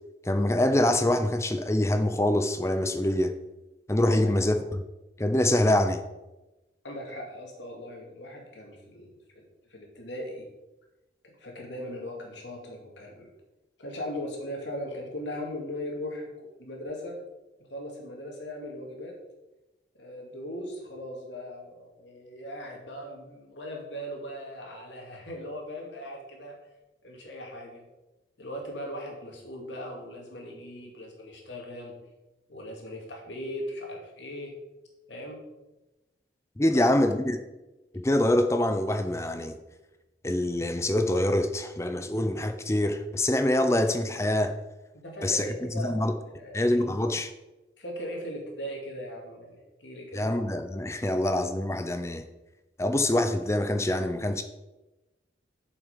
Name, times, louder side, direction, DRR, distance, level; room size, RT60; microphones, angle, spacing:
voice 1, 0.2-3.3 3.9-4.8 5.2-6.0 36.6-37.4 37.9-39.6 40.2-44.6 45.2-47.3 50.1-52.2 52.8-54.4, left 1 dB, 15° left, 8 dB, 0.6 m, -25 dB
voice 2, 6.8-9.4 9.7-10.5 11.2-13.3 13.8-17.1 17.7-19.1 20.0-26.6 27.0-27.8 28.4-31.9 32.5-34.5 35.1-35.4 36.7-36.8 45.0-46.1 46.4-46.9 47.8-50.3, left 1 dB, 85° left, 0 dB, 2.6 m, -39 dB
8.5 x 7.2 x 5.1 m, 1.0 s
head